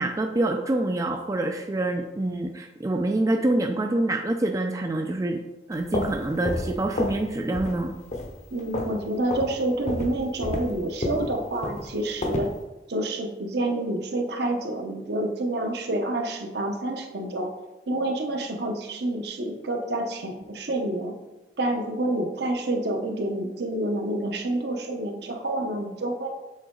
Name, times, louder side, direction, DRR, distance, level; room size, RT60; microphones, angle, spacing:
voice 1, 0.0-5.4 5.7-7.9, right 2 dB, 20° right, 4 dB, 0.3 m, -26 dB
sound 1, 5.7-7.3 7.5-7.8 8.1-9.0 9.3-9.5 9.9-12.6, left 1 dB, 40° left, 0.8 m, -30 dB
voice 2, 8.5-12.5 12.9-17.5 17.9-21.2 21.6-26.3, right 1 dB, 60° right, 3 dB, 0.9 m, -28 dB
7.5 x 3.9 x 3.8 m, 1.1 s
head